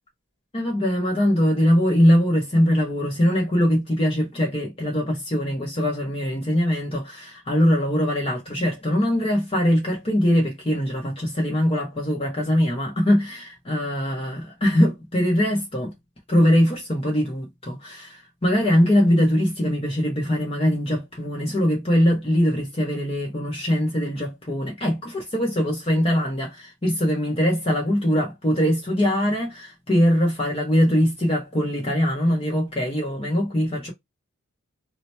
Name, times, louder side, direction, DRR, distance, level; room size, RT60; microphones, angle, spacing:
voice 1, 0.5-15.9 16.3-33.9, equal, 25° left, 0.9 m, -22 dB
2.9 x 2.1 x 4.1 m
head